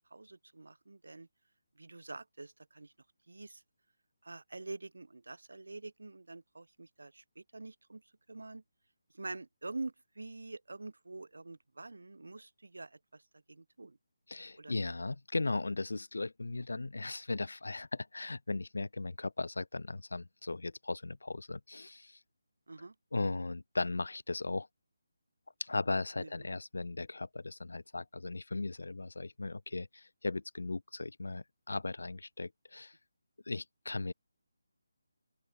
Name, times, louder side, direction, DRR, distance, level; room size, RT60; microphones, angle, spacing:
voice 1, 0.1-1.3 1.8-2.9 3.3-3.6 4.2-8.0 8.3-8.6 9.1-13.2 13.5-14.0 14.6-14.8 22.7-22.9 26.2-26.3, right 3 dB, 75° right, 2.0 m, -46 dB
voice 2, 14.3-22.2 23.1-24.7 25.6-33.0 33.5-34.1, left 3 dB, 75° left, 1.5 m, -37 dB
open air
figure-of-eight pair, 155°, 0 cm